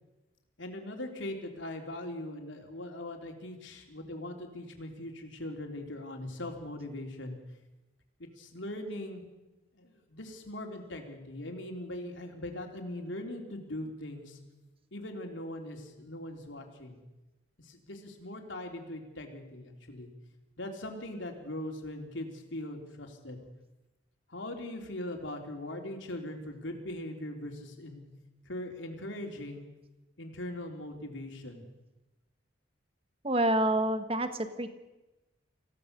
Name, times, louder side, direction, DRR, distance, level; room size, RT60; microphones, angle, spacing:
voice 1, 0.6-7.4 8.2-9.2 9.8-14.4 14.9-17.0 17.6-20.1 20.6-23.4 24.3-28.0 28.5-29.6 30.2-31.6, left 1 dB, 75° left, 3 dB, 3.4 m, -40 dB
voice 2, 33.2-34.3 34.6-34.7, right 1 dB, 30° right, 9 dB, 1.4 m, -27 dB
26.0 x 16.5 x 6.8 m, 1.1 s
head